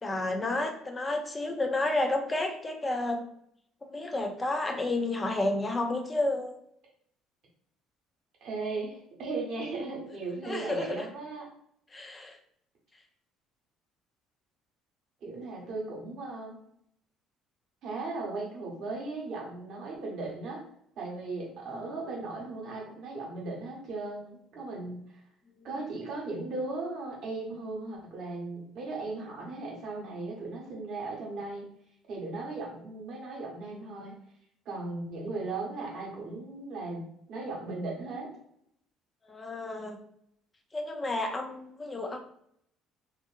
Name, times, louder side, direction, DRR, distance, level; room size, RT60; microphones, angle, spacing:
voice 1, 0.0-3.3 3.8-6.5 10.4-11.0 11.9-12.4 21.7-21.8 39.2-40.0 40.7-42.2, left 2 dB, 25° left, 4 dB, 0.5 m, -31 dB
voice 2, 8.4-11.5 15.2-16.6 17.8-20.6 21.0-25.0 25.6-31.6 32.1-34.1 34.6-38.3, right 3 dB, 65° right, -2 dB, 1.0 m, -37 dB
2.6 x 2.5 x 2.5 m, 0.70 s
supercardioid pair, 70°, 0 cm